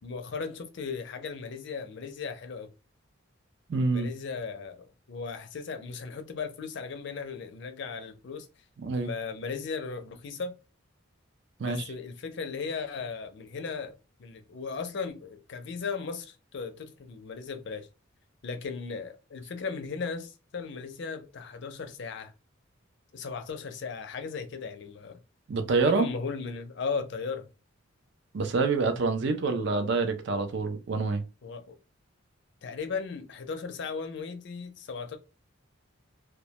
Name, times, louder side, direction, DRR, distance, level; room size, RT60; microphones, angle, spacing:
voice 1, 0.0-2.7 3.9-8.5 9.0-10.5 11.6-13.9 14.2-17.9 18.4-22.3 23.1-25.2 25.8-27.5 31.4-31.8 32.6-35.2, left 5 dB, 60° left, 0.4 m, -36 dB
voice 2, 3.7-4.1 8.8-9.1 11.6-11.8 25.5-26.1 28.3-31.2, right 4 dB, 60° right, 0.4 m, -26 dB
2.1 x 2.1 x 2.8 m
head